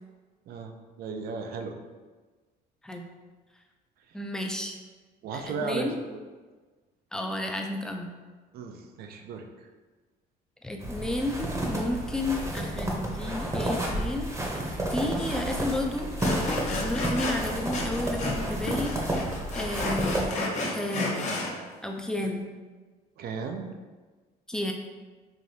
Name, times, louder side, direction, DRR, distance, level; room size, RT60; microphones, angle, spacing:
voice 1, 1.0-1.7 5.2-6.2 8.5-9.4 23.2-23.7, right 5 dB, 65° right, 4 dB, 0.5 m, -35 dB
voice 2, 4.1-4.8 5.3-6.0 7.1-8.1 10.6-14.6 14.9-16.1 16.6-19.0 19.5-20.4 20.7-21.3 21.8-22.5 24.5-24.7, left 1 dB, 5° left, 2 dB, 0.4 m, -32 dB
sound 1, 10.8-20.3, right 1 dB, 15° right, 0.8 m, -31 dB
Sawing, 15.2-15.3 15.6-15.7 16.2-18.4 18.7-21.5, left 2 dB, 45° left, 0.8 m, -32 dB
5.0 x 2.6 x 2.7 m, 1.3 s
cardioid pair, 110°, 17 cm